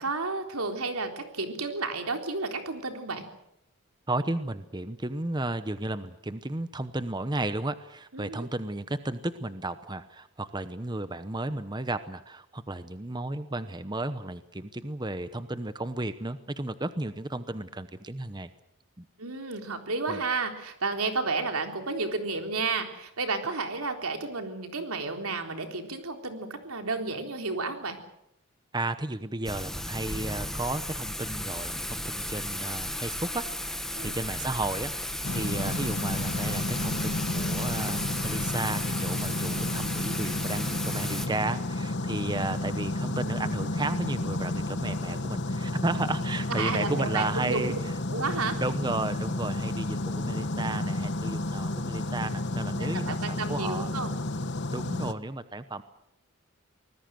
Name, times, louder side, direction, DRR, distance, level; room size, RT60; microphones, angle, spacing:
voice 1, 0.0-3.3 8.1-8.5 19.2-28.0 33.9-34.2 46.5-47.7 48.1-48.6 52.8-54.2, right 3 dB, 90° right, 5 dB, 3.8 m, -32 dB
voice 2, 4.1-18.5 19.0-19.1 20.1-20.2 28.7-47.7 48.6-53.9 54.7-55.8, right 2 dB, 20° right, 12 dB, 0.9 m, -33 dB
Thunder / Rain, 29.4-41.3, left 1 dB, ahead, 1.1 m, -34 dB
sound 1, 35.2-55.1, left 2 dB, 55° left, 1.2 m, -31 dB
25.0 x 19.5 x 7.8 m, 0.81 s
head